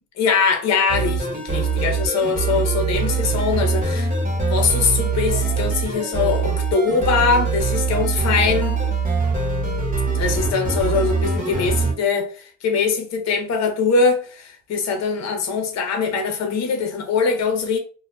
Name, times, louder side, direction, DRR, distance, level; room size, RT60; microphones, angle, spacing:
voice 1, 0.2-8.8 10.1-17.8, left 5 dB, 60° left, 0.7 m, -22 dB
sound 1, 0.9-11.9, right 4 dB, 30° right, 0.9 m, -23 dB
2.2 x 2.1 x 3.1 m
cardioid pair, 90°, 30 cm